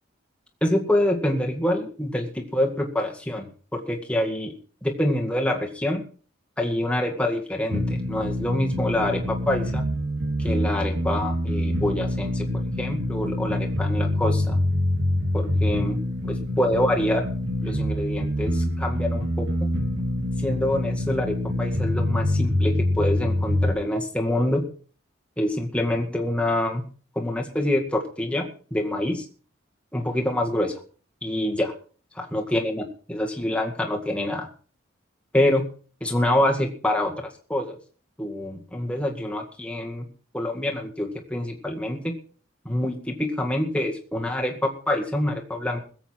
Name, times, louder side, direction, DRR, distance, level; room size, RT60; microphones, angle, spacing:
voice 1, 0.6-4.5 4.8-6.0 6.6-9.9 10.4-14.6 15.3-17.3 17.6-19.5 20.4-24.6 25.4-26.9 27.2-29.2 29.9-30.8 31.2-31.7 32.2-34.5 35.3-35.6 36.0-37.1 37.5-37.8 38.2-40.1 40.3-42.1 42.7-45.8, left 1 dB, 5° left, 1 dB, 2.0 m, -26 dB
sound 1, 7.7-23.7, left 1 dB, 70° right, 3.0 m, -25 dB
21.0 x 8.1 x 4.5 m, 0.40 s
head